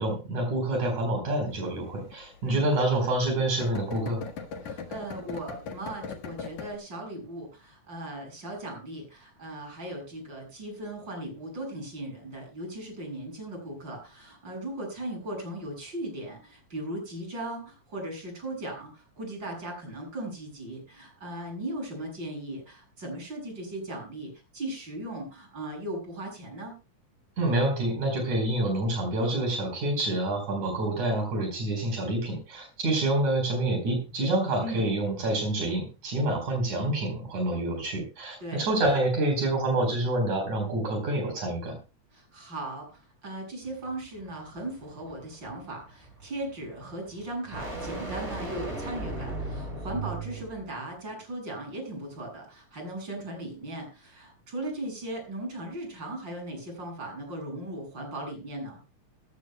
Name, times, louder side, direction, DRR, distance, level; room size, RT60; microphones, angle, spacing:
voice 1, 0.0-4.2 27.4-41.8, right 1 dB, 75° right, 3 dB, 5.8 m, -27 dB
sound 1, 1.5-6.8, left 5 dB, 70° left, 3.1 m, -39 dB
voice 2, 4.6-26.7 34.6-34.9 38.4-38.6 42.1-58.8, right 1 dB, 35° right, 2 dB, 7.9 m, -38 dB
sound 2, 43.6-50.7, right 2 dB, 20° right, 6.0 m, -38 dB
20.0 x 15.0 x 2.2 m, 0.30 s
omnidirectional pair, 3.4 m